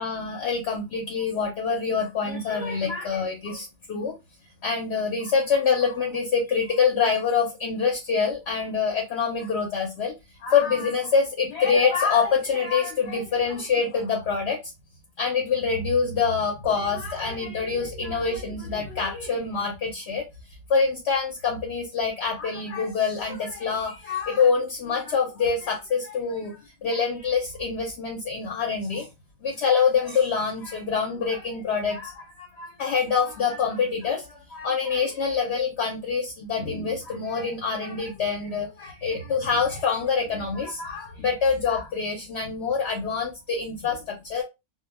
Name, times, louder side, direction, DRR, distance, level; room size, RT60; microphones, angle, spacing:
voice 1, 0.0-4.2 4.6-10.1 10.4-14.7 15.2-20.2 20.7-29.1 29.4-44.4, left 5 dB, 65° left, 0.8 m, -25 dB
2.1 x 2.1 x 3.2 m
omnidirectional pair, 1.4 m